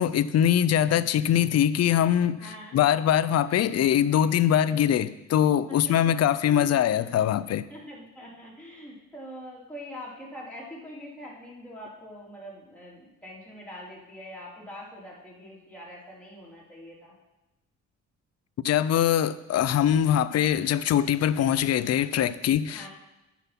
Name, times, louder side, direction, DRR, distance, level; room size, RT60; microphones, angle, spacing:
voice 1, 0.0-7.6 18.6-22.9, left 10 dB, 55° left, 15 dB, 0.5 m, -23 dB
voice 2, 2.4-2.8 4.6-5.0 5.7-6.1 6.4-7.2 7.7-17.1 22.7-22.9, equal, 5° left, -5 dB, 3.2 m, -44 dB
9.1 x 6.1 x 5.9 m, 0.97 s
cardioid pair, 90°, 30 cm